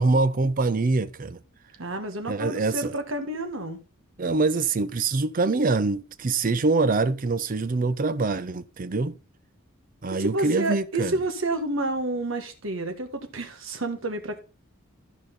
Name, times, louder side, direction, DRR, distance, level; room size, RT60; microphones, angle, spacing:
voice 1, 0.0-1.4 2.3-2.9 4.2-9.2 10.0-11.1, right 3 dB, 40° right, 0.5 m, -24 dB
voice 2, 1.8-3.8 10.2-14.4, right 2 dB, 60° right, 1.5 m, -29 dB
13.5 x 5.1 x 3.9 m
head